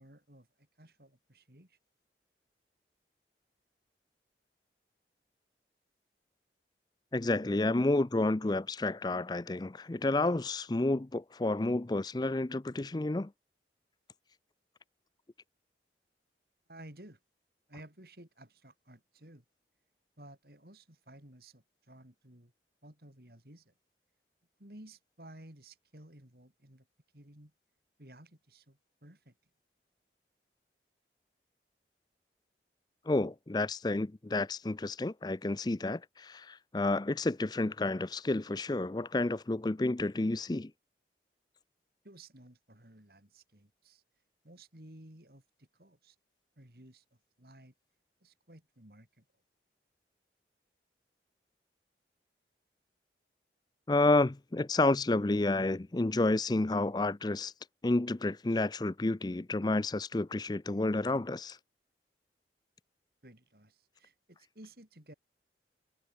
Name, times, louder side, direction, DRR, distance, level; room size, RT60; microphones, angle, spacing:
voice 1, 0.0-1.8 16.7-17.2 17.7-19.4 20.2-22.5 22.8-23.7 24.6-26.9 27.1-27.5 28.0-29.4 42.0-44.0 44.4-46.2 46.6-47.0 47.4-47.7 48.2-49.3 63.2-65.1, right 1 dB, 60° right, 4.2 m, -55 dB
voice 2, 7.1-13.3 33.1-40.7 53.9-57.5 57.8-61.6, left 2 dB, 25° left, 0.5 m, -30 dB
head